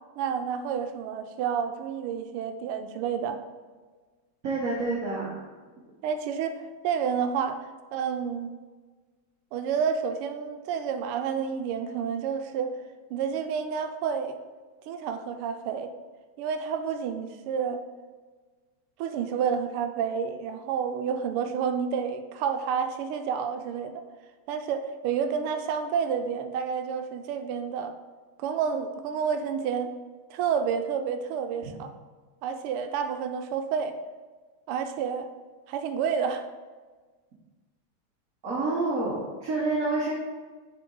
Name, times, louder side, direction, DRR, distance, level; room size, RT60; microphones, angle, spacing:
voice 1, 0.2-3.4 6.0-8.5 9.5-12.7 13.1-14.4 14.9-15.9 16.4-17.8 19.0-24.0 24.5-28.0 28.4-29.9 30.3-31.9 32.4-33.9 34.7-35.3 35.7-36.5, right 7 dB, 85° right, 7 dB, 1.5 m, -29 dB
voice 2, 4.4-5.3 31.6-31.7 38.4-40.1, right 3 dB, 50° right, -5 dB, 1.2 m, -28 dB
6.6 x 5.1 x 3.8 m, 1.4 s
omnidirectional pair, 2.4 m